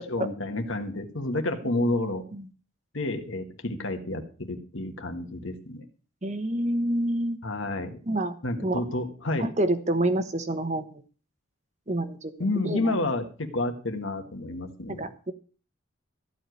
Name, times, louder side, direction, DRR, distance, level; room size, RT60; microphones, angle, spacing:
voice 1, 0.1-2.2 2.9-5.8 7.4-8.0 8.4-9.5 12.4-15.1, left 2 dB, 65° left, 5 dB, 1.6 m, -30 dB
voice 2, 6.2-7.4 8.1-8.8 9.4-11.0 11.9-12.3 12.6-13.0 14.9-15.3, right 1 dB, 35° right, 9 dB, 1.2 m, -28 dB
14.5 x 4.9 x 9.3 m, 0.38 s
head